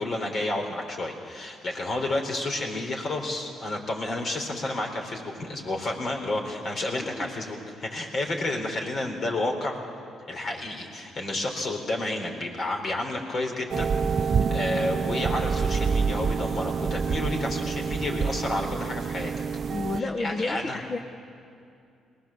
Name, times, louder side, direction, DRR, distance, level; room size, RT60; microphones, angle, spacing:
voice 1, 0.0-9.8 10.3-19.3 19.9-20.8, left 2 dB, 50° left, 2 dB, 3.9 m, -31 dB
voice 2, 6.9-7.3 19.7-21.0, left 3 dB, 35° left, 5 dB, 1.1 m, -31 dB
sound 1, 13.7-20.0, right 5 dB, 50° right, 0.6 m, -27 dB
22.5 x 19.5 x 7.3 m, 2.5 s
cardioid pair, 90°, 0 cm